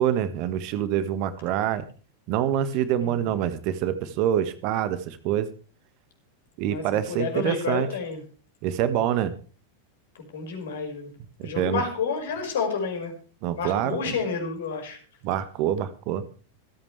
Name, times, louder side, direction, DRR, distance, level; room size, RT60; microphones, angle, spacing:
voice 1, 0.0-1.8 2.3-5.5 6.6-7.9 8.6-9.3 11.4-11.8 13.4-14.0 15.2-16.2, right 10 dB, 45° right, 13 dB, 1.5 m, -26 dB
voice 2, 6.7-8.2 10.1-11.1 11.4-13.1 13.5-15.0, left 5 dB, 60° left, 3 dB, 5.6 m, -30 dB
26.5 x 8.9 x 3.3 m, 0.37 s
figure-of-eight pair, 90°, 0 cm